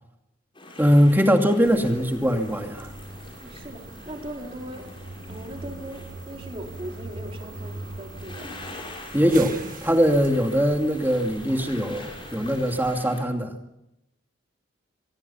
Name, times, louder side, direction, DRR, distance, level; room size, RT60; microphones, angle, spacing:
sound 1, 0.5-13.2, left 2 dB, 25° left, 6.8 m, -44 dB
voice 1, 0.8-2.9 9.1-9.5 9.8-13.5, equal, 10° right, 3 dB, 2.5 m, -21 dB
sound 2, 1.6-12.9, right 2 dB, 45° right, 1.8 m, -41 dB
voice 2, 3.4-4.9 5.3-8.6, right 1 dB, 30° right, 2 dB, 3.6 m, -39 dB
25.5 x 22.5 x 5.8 m, 0.85 s
head